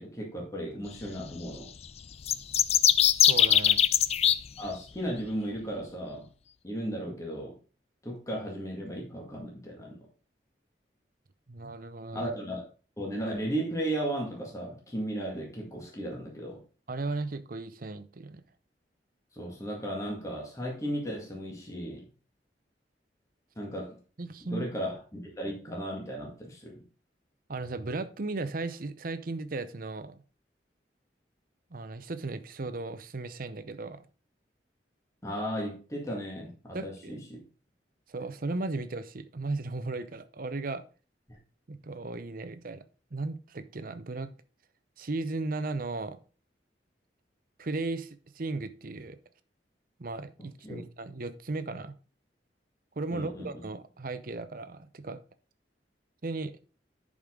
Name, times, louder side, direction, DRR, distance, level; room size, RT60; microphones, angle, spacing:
voice 1, 0.0-1.7 4.6-6.3 6.6-7.5 8.0-10.0 12.1-12.6 13.0-16.6 19.3-22.0 23.6-24.0 24.4-26.8 35.2-37.4 41.3-41.4 50.6-50.8 53.1-53.6, right 1 dB, 20° left, 2.0 m, -35 dB
sound 1, 2.2-4.4, left 10 dB, 35° left, 0.3 m, -21 dB
voice 2, 3.1-3.8 11.5-12.3 16.9-18.4 24.2-24.7 27.5-30.2 31.7-34.1 36.7-37.2 38.1-40.8 41.7-42.8 43.1-44.3 45.0-46.2 47.6-49.2 50.0-51.9 53.0-55.2 56.2-56.6, right 3 dB, 50° right, 0.7 m, -36 dB
10.5 x 5.0 x 3.7 m
head